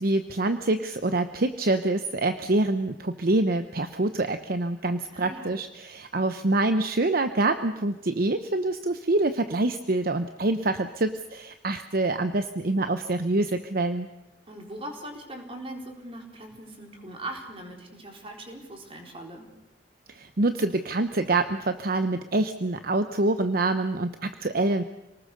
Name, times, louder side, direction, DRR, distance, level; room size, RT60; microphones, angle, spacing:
voice 1, 0.0-14.1 20.1-24.8, right 2 dB, 55° right, 9 dB, 0.9 m, -26 dB
voice 2, 5.1-5.6 14.5-19.4, right 1 dB, 30° right, 2 dB, 4.2 m, -40 dB
27.0 x 19.0 x 6.6 m, 0.94 s
head